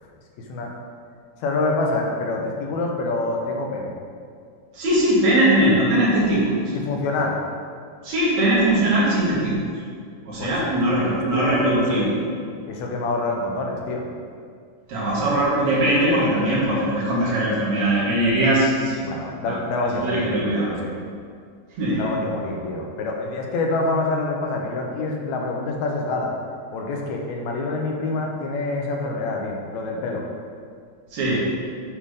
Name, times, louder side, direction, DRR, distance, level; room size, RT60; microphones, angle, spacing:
voice 1, 1.4-3.9 6.7-7.4 10.4-11.6 11.9-12.1 12.7-14.1 19.0-20.9 22.0-26.3 26.7-30.2, left 2 dB, 75° left, 0 dB, 2.0 m, -26 dB
voice 2, 4.7-6.5 8.0-9.6 10.2-12.1 14.9-19.0 19.4-19.6 20.0-20.7 21.8-22.1 31.1-31.5, right 1 dB, 70° right, -7 dB, 3.0 m, -20 dB
8.5 x 3.6 x 4.9 m, 2.2 s
omnidirectional pair, 3.5 m